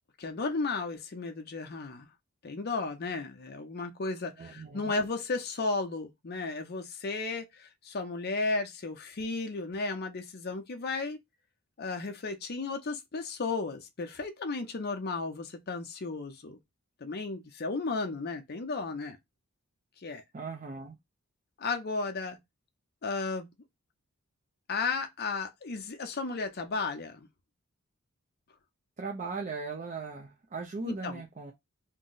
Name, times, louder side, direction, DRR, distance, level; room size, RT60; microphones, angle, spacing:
voice 1, 0.2-2.1 2.4-11.2 11.8-16.6 17.0-19.2 20.0-20.2 21.6-22.4 23.0-23.5 24.7-27.3 30.8-31.2, left 3 dB, 45° left, 0.6 m, -34 dB
voice 2, 4.4-4.9 20.3-21.0 29.0-31.5, right 4 dB, 35° right, 0.4 m, -38 dB
2.6 x 2.0 x 3.8 m
head